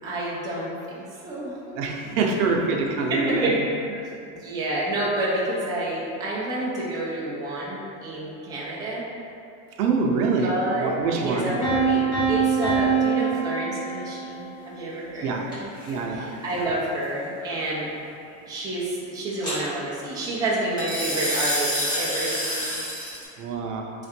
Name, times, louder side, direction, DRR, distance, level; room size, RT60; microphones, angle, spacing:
voice 1, 0.0-1.8 2.0-2.5 2.8-3.6 4.3-9.1 10.4-15.7 16.1-17.9 18.5-22.9, right 1 dB, 10° right, -7 dB, 0.4 m, -29 dB
voice 2, 1.8-3.6 9.8-11.6 15.2-15.5 15.9-16.3 23.4-23.9, right 4 dB, 90° right, 1 dB, 0.7 m, -25 dB
Piano, 11.6-14.5, right 5 dB, 40° left, 1.2 m, -24 dB
sound 1, 15.5-15.9 19.4-19.6 20.8-23.2, equal, 10° left, 1.5 m, -28 dB
3.3 x 2.5 x 4.2 m, 2.6 s
supercardioid pair, 145°, 44 cm